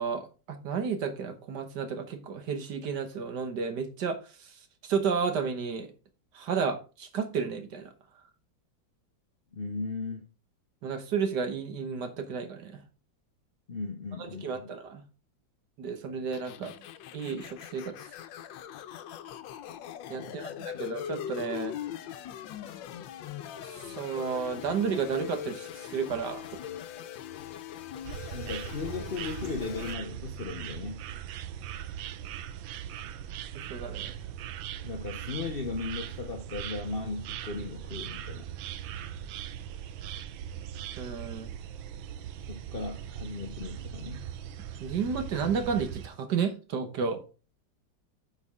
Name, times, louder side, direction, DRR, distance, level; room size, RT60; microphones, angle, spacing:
voice 1, 0.0-5.9 6.3-7.9 10.8-12.8 14.2-15.0 15.8-16.8 17.1-18.0 20.1-21.7 23.6-26.6 33.5-34.2 41.0-41.5 44.8-47.2, right 6 dB, 65° right, 1.7 m, -32 dB
voice 2, 9.5-10.3 13.7-14.7 20.2-20.6 28.3-31.0 34.8-38.5 42.5-44.3, left 4 dB, 45° left, 0.7 m, -37 dB
sound 1, 16.3-29.9, left 10 dB, 80° left, 1.4 m, -41 dB
sound 2, 28.0-46.1, right 10 dB, 85° right, 1.4 m, -40 dB
9.7 x 5.3 x 3.6 m
omnidirectional pair, 2.1 m